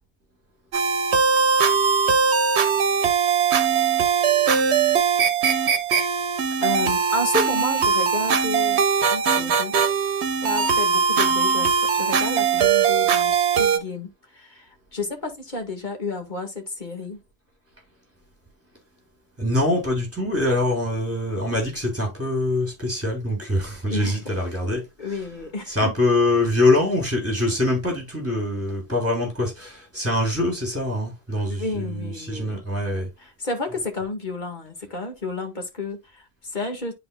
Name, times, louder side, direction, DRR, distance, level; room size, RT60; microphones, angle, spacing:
sound 1, 0.7-13.8, right 6 dB, 80° right, 1.1 m, -20 dB
voice 1, 6.6-8.8 9.1-9.8 10.4-17.2 23.9-24.3 25.0-25.9 31.5-32.6 33.2-36.9, left 3 dB, 45° left, 1.8 m, -31 dB
voice 2, 19.4-24.8 25.7-33.1, left 1 dB, 15° right, 3.5 m, -24 dB
10.5 x 4.2 x 2.2 m
omnidirectional pair, 1.1 m